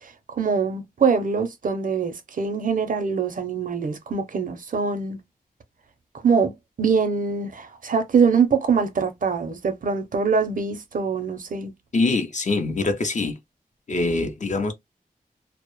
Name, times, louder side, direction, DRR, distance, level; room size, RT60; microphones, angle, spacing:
voice 1, 0.0-5.2 6.2-6.5 6.8-11.7, right 5 dB, 60° right, 0.5 m, -23 dB
voice 2, 11.9-13.4 13.9-14.7, left 3 dB, 50° left, 0.5 m, -24 dB
2.1 x 2.0 x 2.9 m
wide cardioid pair, 110°, 15 cm